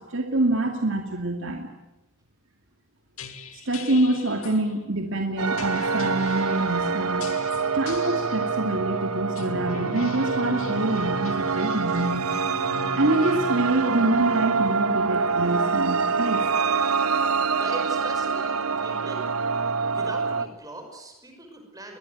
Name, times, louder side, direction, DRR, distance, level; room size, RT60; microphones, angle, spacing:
voice 1, 0.0-1.7 3.6-7.3 7.7-12.3 12.9-16.4, right 2 dB, 60° right, 3 dB, 2.5 m, -26 dB
sound 1, 3.2-4.6 5.6-6.6 7.2-8.4 9.3-14.9, left 2 dB, 70° left, 2.6 m, -38 dB
sound 2, 5.4-20.5, right 5 dB, 85° right, 1.3 m, -26 dB
voice 2, 17.6-19.2 19.9-22.0, right 2 dB, 15° right, 4 dB, 5.5 m, -40 dB
22.0 x 22.0 x 9.3 m, 0.97 s
head